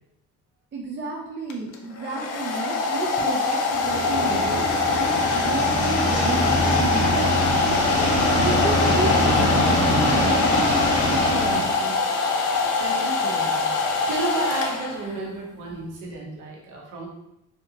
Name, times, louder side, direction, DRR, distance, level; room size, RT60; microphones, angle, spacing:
voice 1, 0.7-7.8 8.3-12.0, right 3 dB, 40° right, -2 dB, 0.5 m, -32 dB
Domestic sounds home sounds, 1.5-15.2, left 4 dB, 80° left, 0.6 m, -24 dB
sound 1, 3.7-11.8, left 1 dB, 55° left, 0.9 m, -23 dB
voice 2, 12.5-17.1, right 3 dB, 80° right, -2 dB, 0.8 m, -33 dB
3.2 x 2.7 x 2.7 m, 0.87 s
cardioid pair, 90°, 30 cm